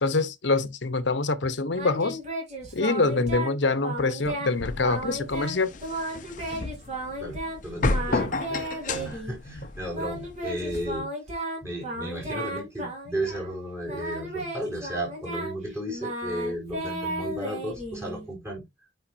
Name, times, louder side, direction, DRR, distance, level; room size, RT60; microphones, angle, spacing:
voice 1, 0.0-2.2 2.7-5.7, left 3 dB, 70° left, 0.9 m, -25 dB
Singing, 1.7-3.6 3.8-4.5 4.8-7.6 7.9-9.3 9.9-13.5 13.8-18.3, right 1 dB, 35° right, 3.3 m, -34 dB
sound 1, 4.5-11.0, left 3 dB, 40° left, 0.7 m, -32 dB
voice 2, 7.2-11.1 11.6-18.6, right 1 dB, 15° right, 4.7 m, -34 dB
8.9 x 5.1 x 2.6 m
head